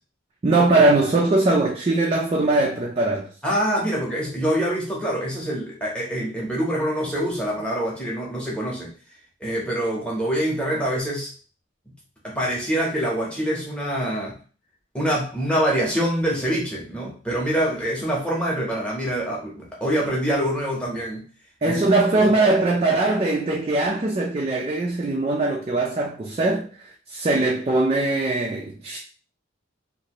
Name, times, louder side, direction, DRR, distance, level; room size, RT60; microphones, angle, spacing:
voice 1, 0.4-3.3 21.6-29.0, right 2 dB, 30° right, 0.4 m, -21 dB
voice 2, 3.4-8.9 9.4-11.3 12.2-14.4 14.9-21.2 21.6-21.9 22.3-22.4, equal, 5° left, 1.0 m, -25 dB
2.7 x 2.6 x 3.0 m
head